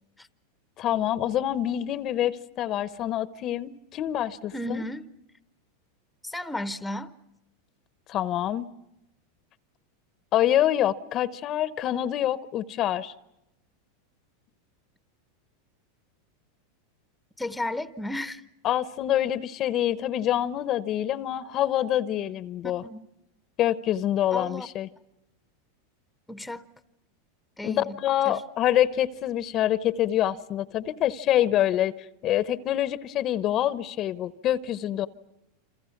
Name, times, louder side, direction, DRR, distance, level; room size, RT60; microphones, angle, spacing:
voice 1, 0.8-4.8 8.1-8.7 10.3-13.1 18.6-22.8 23.6-24.9 27.6-31.9 32.2-35.1, left 12 dB, 40° left, 0.8 m, -26 dB
voice 2, 4.5-5.1 6.2-7.1 17.4-18.4 22.6-23.1 24.3-24.7 26.3-26.7 27.6-28.0 28.2-28.4, left 1 dB, 5° left, 0.9 m, -33 dB
29.0 x 26.5 x 5.9 m
hypercardioid pair, 115°, 0 cm